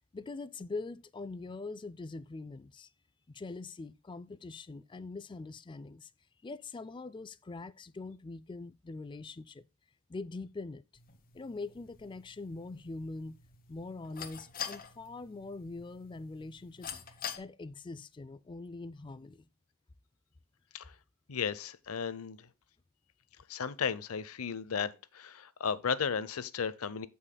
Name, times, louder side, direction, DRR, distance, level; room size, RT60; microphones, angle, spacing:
voice 1, 0.1-2.9 3.3-6.1 6.4-9.6 10.1-10.8 11.3-13.4 13.7-17.0 17.4-19.4, left 3 dB, 20° left, 0.4 m, -43 dB
sound 1, 11.0-17.4, left 8 dB, 40° left, 1.1 m, -46 dB
voice 2, 21.3-22.4 23.5-27.1, left 6 dB, 75° left, 0.7 m, -34 dB
15.0 x 5.6 x 2.2 m
head